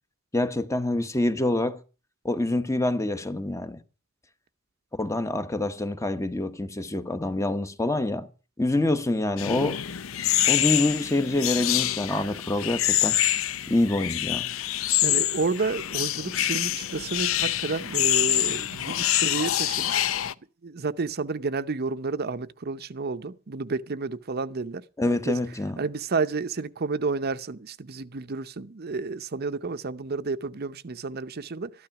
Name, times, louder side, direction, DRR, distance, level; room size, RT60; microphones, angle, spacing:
voice 1, 0.3-1.8 2.2-3.8 4.9-8.3 8.6-9.8 10.4-13.2 13.7-14.5 25.0-25.8, left 2 dB, 15° left, 1.0 m, -26 dB
sound 1, 9.4-20.3, left 13 dB, 80° left, 0.6 m, -26 dB
voice 2, 15.0-20.1 20.6-25.3 25.8-31.7, right 4 dB, 50° right, 0.7 m, -31 dB
13.5 x 12.0 x 5.9 m
head